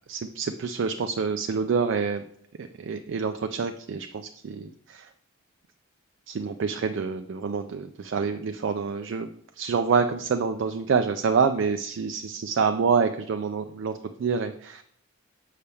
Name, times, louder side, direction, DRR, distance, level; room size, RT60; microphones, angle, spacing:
voice 1, 0.1-2.2 2.6-5.1 6.3-9.3 9.6-14.8, right 5 dB, 60° right, 7 dB, 0.3 m, -27 dB
6.8 x 5.6 x 3.4 m, 0.68 s
head